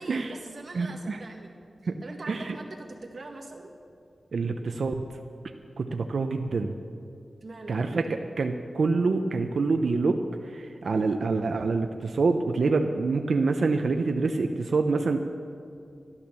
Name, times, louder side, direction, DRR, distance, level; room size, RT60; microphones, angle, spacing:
voice 1, 0.0-1.6 2.0-3.7 7.4-8.2, right 2 dB, 55° right, 2 dB, 1.8 m, -42 dB
voice 2, 0.7-1.2 1.9-2.0 2.3-2.5 4.3-5.0 5.8-6.7 7.7-8.0 8.4-10.2 10.5-15.2, right 4 dB, 75° right, 5 dB, 0.7 m, -26 dB
12.5 x 12.0 x 6.9 m, 2.5 s
wide cardioid pair, 95°, 0 cm